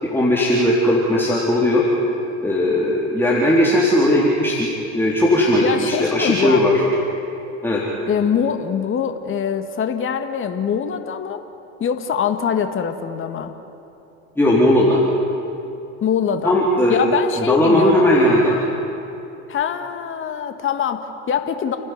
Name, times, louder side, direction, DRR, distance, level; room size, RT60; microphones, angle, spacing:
voice 1, 0.0-1.8 2.4-6.7 7.6-7.8 14.4-15.0 16.4-17.0 17.4-18.6, left 1 dB, 5° left, -5 dB, 4.0 m, -17 dB
voice 2, 5.6-6.6 8.1-11.4 11.8-13.5 16.0-16.6 16.9-18.1 19.5-21.8, left 7 dB, 40° left, 7 dB, 1.8 m, -23 dB
29.5 x 12.5 x 9.6 m, 2.8 s
hypercardioid pair, 85°, 33 cm